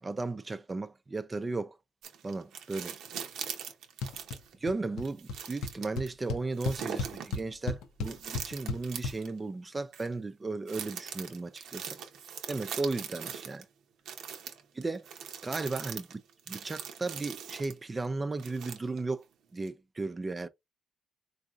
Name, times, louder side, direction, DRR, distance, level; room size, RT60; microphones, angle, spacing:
voice 1, 0.0-1.8 2.2-3.0 4.6-12.0 12.5-13.7 14.7-15.1 15.4-16.0 16.5-19.2 19.5-20.5, right 3 dB, 25° right, 0.4 m, -35 dB
sound 1, 2.0-4.5 5.0-6.1 6.6-7.4 8.0-9.3 9.9-10.1 10.7-13.6 14.1-17.8 18.4-19.1 19.7-19.8, right 8 dB, 80° right, 0.8 m, -41 dB
sound 2, 4.0-4.4 4.6-5.0 5.3-5.4 5.6-9.1, left 3 dB, 90° left, 0.6 m, -34 dB
4.0 x 2.5 x 2.3 m
cardioid pair, 90°, 0 cm